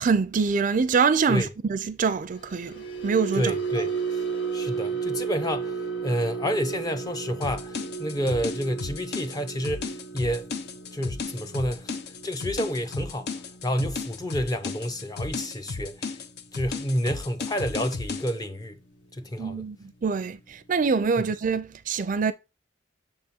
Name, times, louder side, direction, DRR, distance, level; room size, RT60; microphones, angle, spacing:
voice 1, 0.0-3.5 19.4-19.8 20.0-22.3, right 5 dB, 45° right, 0.4 m, -25 dB
sound 1, 2.2-18.6 18.9-19.2 19.6-19.8, right 5 dB, 80° left, 1.2 m, -35 dB
voice 2, 3.3-3.9 4.5-5.8 6.0-10.5 10.9-12.0 12.2-13.3 13.6-16.1 16.5-18.8 19.2-19.6, equal, 20° left, 0.6 m, -29 dB
sound 2, 7.4-18.3, left 4 dB, 60° left, 0.6 m, -35 dB
6.6 x 3.6 x 4.2 m
head